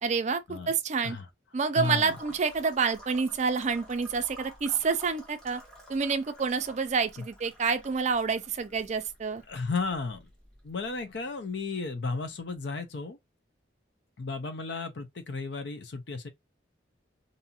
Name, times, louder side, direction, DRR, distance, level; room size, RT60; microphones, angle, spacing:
voice 1, 0.0-1.2 1.5-5.6 5.9-9.4, right 5 dB, 40° right, 0.4 m, -28 dB
voice 2, 1.8-2.2 9.5-10.3 10.6-13.2 14.2-16.3, left 4 dB, 65° left, 0.6 m, -34 dB
sound 1, 1.8-11.6, equal, 5° left, 0.9 m, -51 dB
2.7 x 2.4 x 2.7 m
head